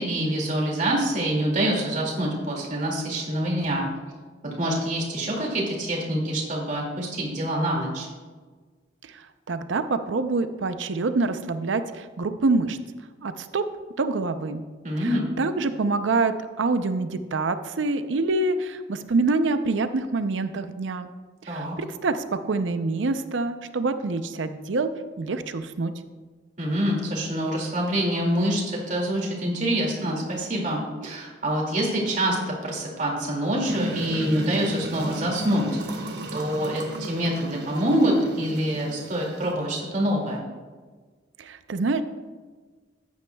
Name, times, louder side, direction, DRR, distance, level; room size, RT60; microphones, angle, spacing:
voice 1, 0.0-3.8 4.4-8.1 14.8-15.3 21.5-21.7 26.6-40.5, right 1 dB, 40° right, -2 dB, 2.3 m, -26 dB
voice 2, 9.5-12.8 13.2-13.6 14.0-14.6 15.0-15.1 15.4-21.1 21.4-24.9 25.2-25.9 41.4-42.0, right 3 dB, 80° right, 10 dB, 0.5 m, -26 dB
sound 1, 33.6-39.5, right 1 dB, 60° right, 1.2 m, -34 dB
14.0 x 9.3 x 2.3 m, 1.4 s
head